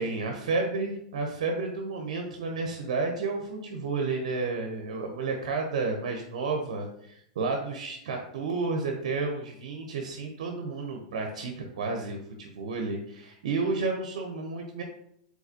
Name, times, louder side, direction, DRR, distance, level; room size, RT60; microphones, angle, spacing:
voice 1, 0.0-14.8, right 3 dB, 80° right, 3 dB, 0.6 m, -31 dB
4.8 x 4.0 x 2.7 m, 0.76 s
hypercardioid pair, 120°, 4 cm